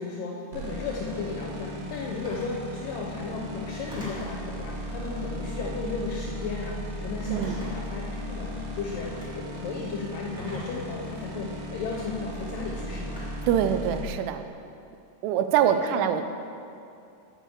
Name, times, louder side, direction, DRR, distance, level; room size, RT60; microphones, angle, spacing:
voice 1, 0.0-8.0 8.3-13.2 15.6-16.0, left 4 dB, 80° left, -2 dB, 2.0 m, -35 dB
sound 1, 0.5-14.0, equal, 70° right, 2.3 m, -36 dB
Telephone, 2.2-2.6 3.9-4.4 5.6-6.0 7.2-7.9 8.9-9.3 10.4-10.9 11.9-12.1 13.2-13.6, right 1 dB, 5° right, 0.3 m, -42 dB
voice 2, 7.3-7.6 13.5-14.4 15.2-16.2, right 9 dB, 85° right, 8 dB, 2.6 m, -24 dB
8.5 x 4.9 x 6.9 m, 2.6 s
omnidirectional pair, 4.7 m